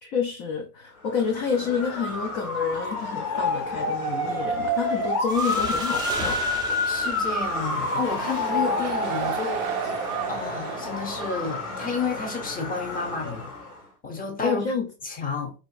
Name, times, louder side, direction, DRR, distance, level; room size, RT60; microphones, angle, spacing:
voice 1, 0.0-6.4 14.4-14.9, left 6 dB, 35° left, 0.6 m, -28 dB
Motor vehicle (road) / Siren, 1.1-13.8, left 2 dB, 65° left, 1.8 m, -29 dB
sound 1, 5.3-8.7, right 4 dB, 10° right, 0.4 m, -36 dB
voice 2, 6.8-13.5 14.0-14.7 15.0-15.5, left 4 dB, 20° left, 0.9 m, -31 dB
sound 2, 7.5-12.0, right 10 dB, 65° right, 0.5 m, -34 dB
3.8 x 2.8 x 2.4 m
hypercardioid pair, 110°, 46 cm